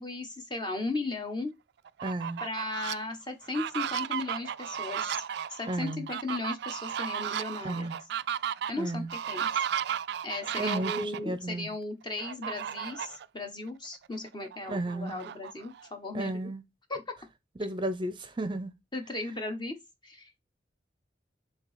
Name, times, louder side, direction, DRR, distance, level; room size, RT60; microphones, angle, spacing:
voice 1, 0.0-1.5 2.4-5.1 5.5-7.9 8.7-9.6 10.2-16.4 16.9-17.0 18.9-19.8 20.0-20.4, left 2 dB, 25° left, 1.2 m, -36 dB
Fowl, 1.9-2.9 3.4-11.2 12.2-13.2 13.7-13.8 14.1-15.9, right 9 dB, 65° right, 0.3 m, -34 dB
voice 2, 2.0-2.4 5.7-6.1 7.6-8.0 8.8-9.1 10.6-11.7 14.7-15.2 16.1-16.6 17.6-18.7, right 1 dB, 30° right, 0.6 m, -33 dB
7.0 x 2.9 x 5.0 m
head